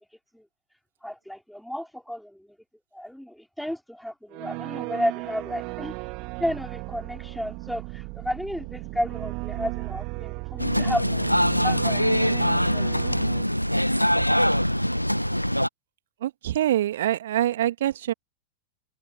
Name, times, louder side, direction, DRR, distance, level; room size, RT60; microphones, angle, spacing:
voice 1, 1.0-2.5 2.9-6.0 6.4-11.3 11.6-12.3 12.7-12.9, equal, ahead, 3.3 m, -32 dB
sound 1, 4.3-13.4, right 28 dB, 45° right, 2.9 m, -35 dB
sound 2, 10.6-15.7, equal, 90° left, 1.2 m, -23 dB
voice 2, 12.2-12.7 13.0-13.5 16.2-18.1, right 12 dB, 60° right, 2.4 m, -26 dB
figure-of-eight pair, 90°, 0 cm